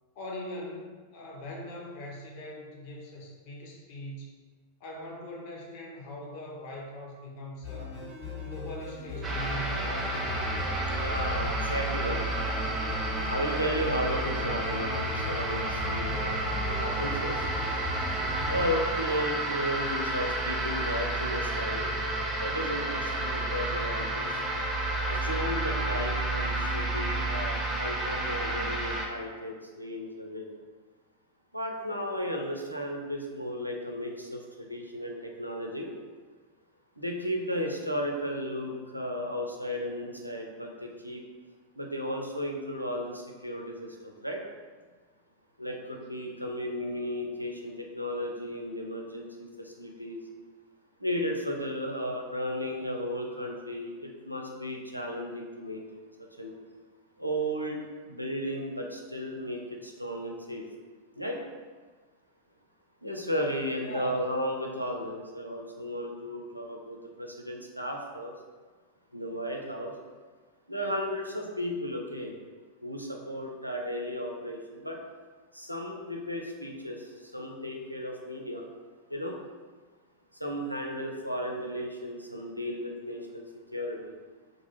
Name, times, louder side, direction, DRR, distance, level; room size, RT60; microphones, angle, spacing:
voice 1, 0.1-4.4 4.8-8.0 8.4-10.9 63.8-64.2, left 1 dB, 45° left, -2 dB, 0.6 m, -41 dB
sound 1, 7.6-18.7, left 4 dB, 70° left, 1.2 m, -38 dB
sound 2, 9.2-29.1, right 2 dB, 10° right, 0.5 m, -31 dB
voice 2, 10.9-12.3 13.3-17.4 18.4-24.3 25.0-30.6 31.5-35.9 37.0-41.2 41.8-44.4 45.6-49.3 49.6-50.2 51.0-56.0 56.4-56.5 57.2-60.7 61.2-61.4 63.0-68.3 69.1-69.9 70.7-72.3 72.8-75.0 75.5-78.7 79.1-79.4 80.3-83.4 83.7-84.1, equal, 90° right, 0 dB, 0.4 m, -34 dB
2.4 x 2.3 x 3.1 m, 1.4 s
figure-of-eight pair, 90°, 0 cm